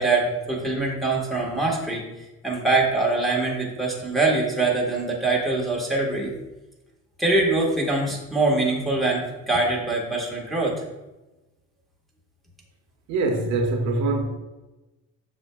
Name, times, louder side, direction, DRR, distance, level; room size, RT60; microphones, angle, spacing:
voice 1, 0.0-2.0 2.4-6.3 7.2-10.8, right 2 dB, ahead, 1.5 m, -23 dB
voice 2, 13.1-14.3, right 3 dB, 60° right, 1.2 m, -23 dB
7.7 x 6.3 x 2.3 m
cardioid pair, 135°, 33 cm